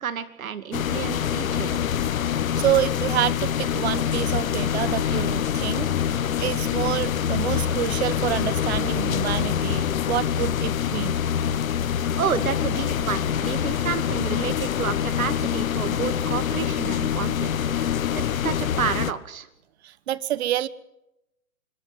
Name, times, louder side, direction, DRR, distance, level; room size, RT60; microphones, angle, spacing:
voice 1, 0.0-1.8 12.2-17.5 17.8-17.9 18.1-19.5, right 8 dB, 65° right, 11 dB, 2.4 m, -30 dB
sound 1, 0.7-19.1, left 8 dB, 65° left, 1.2 m, -25 dB
voice 2, 2.6-5.9 6.1-11.1 19.8-20.7, right 12 dB, 45° right, 18 dB, 1.1 m, -27 dB
25.5 x 13.5 x 9.3 m, 0.88 s
hypercardioid pair, 140°, 44 cm